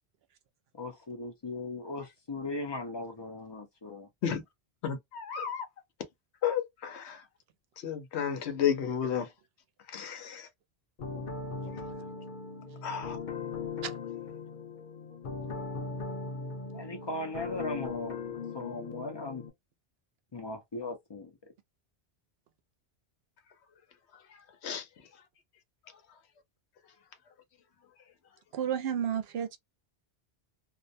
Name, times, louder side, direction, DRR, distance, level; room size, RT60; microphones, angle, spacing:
voice 1, 0.7-4.1 16.7-18.2 18.5-19.4 20.3-21.3, left 2 dB, 35° left, 0.5 m, -38 dB
voice 2, 4.8-5.7 6.4-7.2 7.8-9.3 9.9-10.5 12.8-13.2 24.6-24.8, left 8 dB, 85° left, 1.0 m, -32 dB
sound 1, 11.0-19.5, left 4 dB, 50° left, 0.8 m, -39 dB
voice 3, 28.5-29.6, right 9 dB, 70° right, 0.8 m, -31 dB
2.4 x 2.1 x 2.6 m
omnidirectional pair, 1.1 m